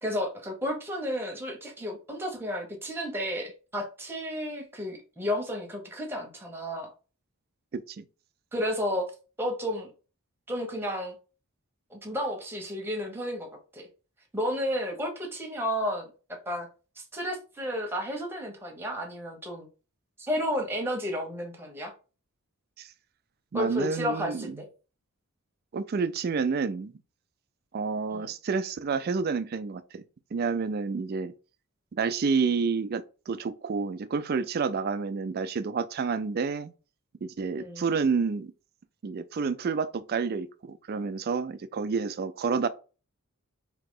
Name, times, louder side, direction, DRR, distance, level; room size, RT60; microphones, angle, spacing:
voice 1, 0.0-6.9 8.5-9.1 9.4-9.9 10.5-11.1 11.9-13.9 14.3-16.7 17.0-19.7 20.2-21.9 23.5-24.6 28.1-28.3 37.6-37.8, equal, 10° right, 0.9 m, -32 dB
voice 2, 7.7-8.0 22.8-22.9 23.5-24.6 25.7-26.9 27.7-30.0 30.3-31.3 32.0-36.7 37.2-38.5 39.0-42.7, right 5 dB, 45° right, 0.3 m, -29 dB
3.8 x 2.8 x 3.7 m
head